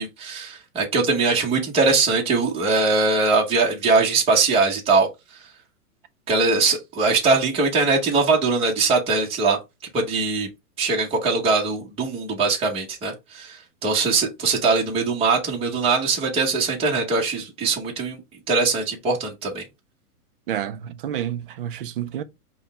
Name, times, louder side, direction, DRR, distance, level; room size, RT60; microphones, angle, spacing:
voice 1, 0.0-5.1 6.3-9.6 9.9-10.5 10.8-18.2 18.5-19.6, right 4 dB, 15° right, 1.0 m, -21 dB
voice 2, 20.5-22.2, right 10 dB, 40° right, 0.4 m, -29 dB
5.5 x 2.3 x 4.0 m
hypercardioid pair, 140°, 46 cm